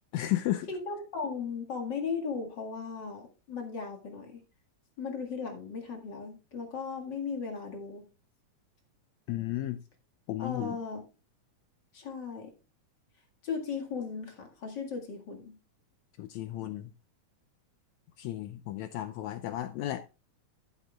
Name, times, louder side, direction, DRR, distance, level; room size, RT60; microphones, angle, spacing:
voice 1, 0.1-0.7 9.3-9.8 10.3-10.8 16.2-16.9 18.2-20.0, left 14 dB, 80° left, 1.7 m, -33 dB
voice 2, 0.7-4.4 5.0-8.0 10.4-11.0 11.9-12.5 13.4-15.6, left 5 dB, 40° left, 2.1 m, -37 dB
14.5 x 8.1 x 2.3 m
omnidirectional pair, 3.6 m